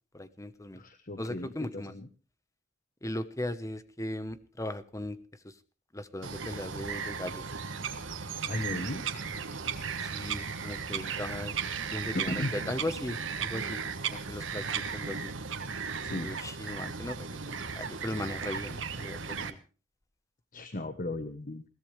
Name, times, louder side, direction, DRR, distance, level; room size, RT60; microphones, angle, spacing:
voice 1, 0.1-0.8 1.2-1.9 3.0-5.2 5.4-5.5 5.9-7.4 10.0-11.5 11.9-13.8 14.1-15.3 16.2-19.6, left 1 dB, 15° left, 12 dB, 1.1 m, -38 dB
voice 2, 0.7-2.1 8.5-9.0 12.1-12.5 16.0-16.3 20.5-21.6, left 1 dB, 45° left, 9 dB, 1.2 m, -36 dB
Bird vocalization bird call bird song, 6.2-19.5, right 6 dB, 85° right, 1.5 m, -36 dB
21.5 x 16.5 x 3.3 m, 0.35 s
head